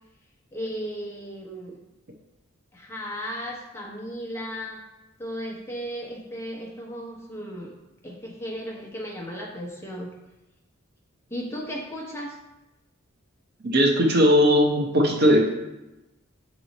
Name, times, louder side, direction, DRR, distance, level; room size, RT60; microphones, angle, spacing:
voice 1, 0.5-1.8 2.7-4.8 5.2-7.7 8.0-10.1 11.3-12.4, equal, 15° left, -2 dB, 0.9 m, -35 dB
voice 2, 13.6-15.5, equal, 55° right, 2 dB, 0.8 m, -18 dB
7.4 x 3.1 x 4.0 m, 0.98 s
head